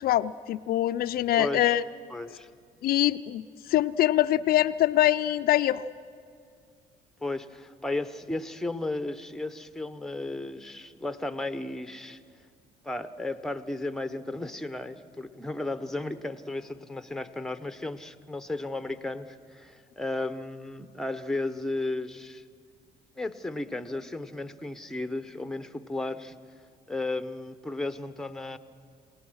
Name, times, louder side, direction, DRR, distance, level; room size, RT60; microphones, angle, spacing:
voice 1, 0.0-1.8 2.8-5.9, left 13 dB, 60° left, 11 dB, 0.4 m, -24 dB
voice 2, 1.4-1.8 2.1-2.5 7.2-12.2 12.8-22.4 23.2-26.3 26.9-28.6, left 2 dB, 5° left, 11 dB, 0.8 m, -34 dB
28.5 x 18.0 x 6.3 m, 2.2 s
cardioid pair, 110°, 17 cm